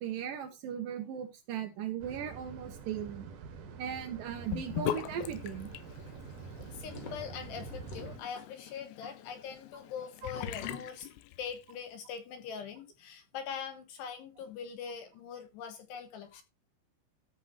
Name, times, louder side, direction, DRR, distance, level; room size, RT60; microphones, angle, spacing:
voice 1, 0.0-3.3 3.8-5.7 9.0-9.1, right 9 dB, 85° right, 1.9 m, -38 dB
sound 1, 2.0-8.2, right 5 dB, 65° right, 2.2 m, -47 dB
Sink (filling or washing) / Bathtub (filling or washing), 4.5-11.8, left 12 dB, 85° left, 3.5 m, -41 dB
sound 2, 6.5-8.2 10.3-10.9, left 2 dB, 45° left, 2.0 m, -47 dB
voice 2, 6.7-11.1 11.4-16.4, left 7 dB, 70° left, 3.0 m, -42 dB
14.0 x 4.7 x 5.9 m
omnidirectional pair, 5.9 m